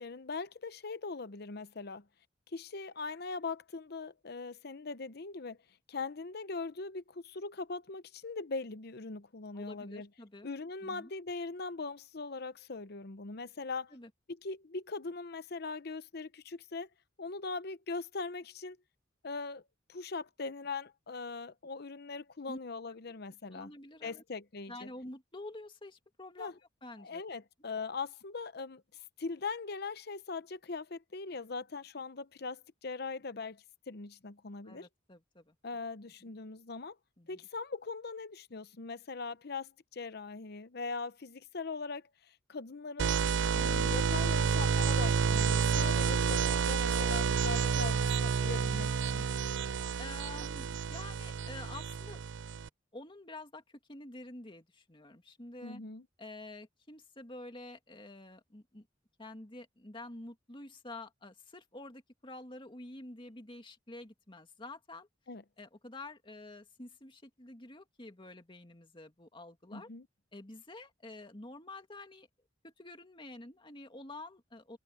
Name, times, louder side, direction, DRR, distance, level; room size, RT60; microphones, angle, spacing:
voice 1, 0.0-2.1 2.5-5.6 5.9-10.1 10.4-13.9 14.3-16.9 17.2-18.8 19.2-19.6 19.9-23.7 24.0-24.9 26.4-26.5 27.0-34.9 35.6-37.0 37.3-43.1 43.5-49.3 55.6-56.1 65.3-65.4 69.7-70.1, left 4 dB, 55° left, 0.8 m, -41 dB
voice 2, 9.5-10.5 10.8-11.1 13.9-14.1 22.5-22.6 23.5-24.2 24.7-27.2 34.6-35.6 37.2-37.4 50.0-52.6 52.9-55.8 56.2-58.9 59.2-65.1 65.6-69.9 70.3-72.3 72.6-74.8, left 2 dB, 25° left, 2.4 m, -48 dB
sound 1, 43.0-52.7, right 6 dB, 70° right, 0.4 m, -30 dB
head